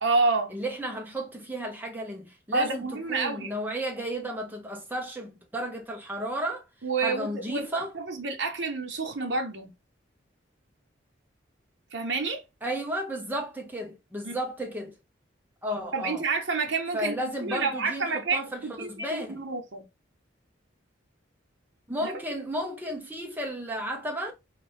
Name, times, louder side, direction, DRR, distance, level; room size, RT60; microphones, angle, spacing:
voice 1, 0.0-0.5 2.5-3.5 6.8-9.7 11.9-12.4 14.2-14.4 15.9-19.8 22.0-22.1, right 3 dB, 65° right, 0.8 m, -29 dB
voice 2, 0.5-6.7 7.0-7.9 12.6-15.0 15.6-16.2 16.9-19.4 21.9-24.3, right 1 dB, 10° right, 0.8 m, -33 dB
4.1 x 2.7 x 3.4 m
head